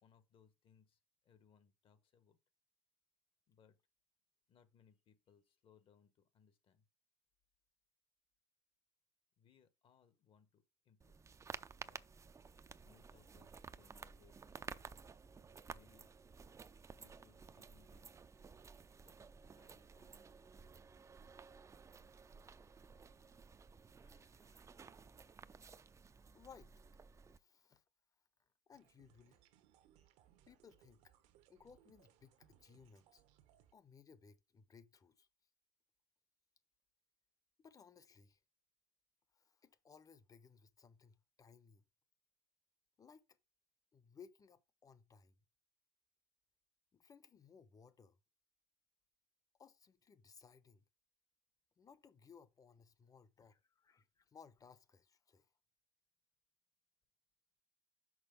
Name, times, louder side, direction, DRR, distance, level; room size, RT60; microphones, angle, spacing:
voice 1, 0.0-2.4 3.5-3.8 4.5-6.8 9.4-11.2 11.8-12.0 12.8-14.8 15.7-16.2 16.9-18.0 19.0-19.2 19.5-20.3, left 7 dB, 45° left, 1.3 m, -70 dB
sound 1, 11.0-27.4, right 5 dB, 25° right, 0.5 m, -55 dB
voice 2, 23.9-24.7 26.3-26.8 27.3-27.8 28.7-29.4 30.5-31.1 31.5-33.2 33.7-35.3 37.6-38.4 39.3-41.8 43.0-43.3 43.9-45.4 46.9-48.2 49.6-50.8 51.8-55.5, left 6 dB, 30° left, 1.0 m, -62 dB
sound 2, 28.7-33.8, right 11 dB, 65° right, 1.0 m, -70 dB
6.3 x 5.1 x 5.2 m
hypercardioid pair, 75°, 12 cm